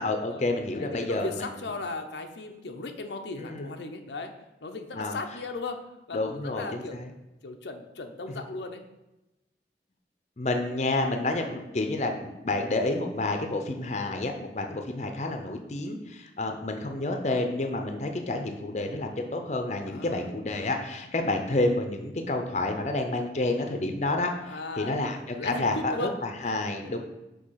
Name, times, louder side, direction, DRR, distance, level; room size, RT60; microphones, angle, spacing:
voice 1, 0.0-1.4 3.4-3.7 4.9-5.2 6.1-7.1 10.4-27.0, left 2 dB, 40° left, 4 dB, 0.6 m, -29 dB
voice 2, 0.7-4.3 4.6-5.8 6.1-7.0 7.4-8.8 14.0-14.3 19.9-20.3 24.4-25.0 25.3-26.1, left 3 dB, 85° left, 5 dB, 0.6 m, -36 dB
6.3 x 2.8 x 5.6 m, 0.98 s
head